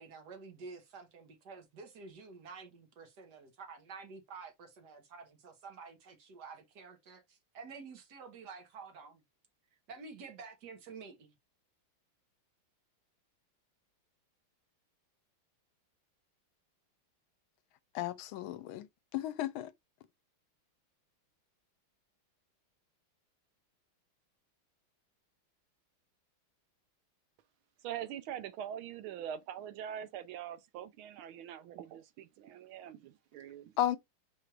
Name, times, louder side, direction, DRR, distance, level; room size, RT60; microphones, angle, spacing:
voice 1, 0.0-9.2 9.9-11.3, right 5 dB, 60° right, 1.5 m, -50 dB
voice 2, 17.9-18.9 19.1-19.7 33.8-34.0, left 13 dB, 80° left, 1.4 m, -33 dB
voice 3, 27.8-33.7, right 10 dB, 80° right, 1.5 m, -43 dB
4.7 x 2.5 x 4.5 m
omnidirectional pair, 2.3 m